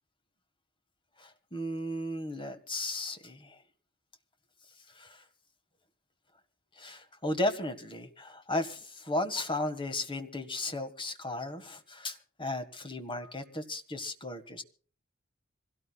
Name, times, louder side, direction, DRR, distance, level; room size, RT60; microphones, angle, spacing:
voice 1, 1.2-3.6 4.9-5.2 6.7-14.6, left 1 dB, 25° left, 1.6 m, -35 dB
26.0 x 17.0 x 2.3 m
head